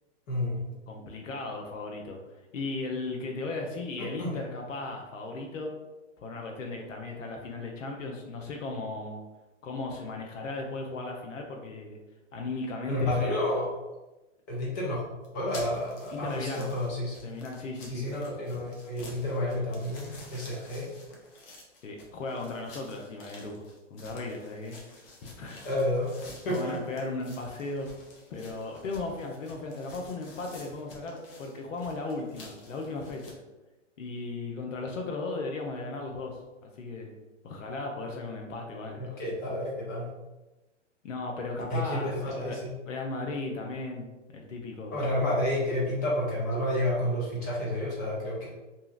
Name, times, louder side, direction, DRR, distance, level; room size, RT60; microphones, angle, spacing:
voice 1, 0.3-0.6 4.0-4.3 12.9-13.7 14.5-15.0 15.3-17.2 17.9-20.9 25.6-26.1 26.4-26.8 39.0-40.1 41.7-42.7 44.9-48.5, left 1 dB, 15° left, -4 dB, 0.3 m, -30 dB
voice 2, 0.9-2.2 2.5-5.7 6.2-9.2 9.6-12.0 12.3-13.4 16.1-16.7 17.2-18.1 18.6-18.7 21.8-24.8 25.4-25.6 26.5-27.9 28.3-33.4 34.0-37.2 37.4-39.2 41.0-42.6 42.9-44.1 44.3-45.1, left 3 dB, 85° left, 1 dB, 0.6 m, -36 dB
sound 1, 15.2-33.3, left 2 dB, 50° left, 0.8 m, -50 dB
2.8 x 2.7 x 2.4 m, 1.1 s
hypercardioid pair, 130°, 37 cm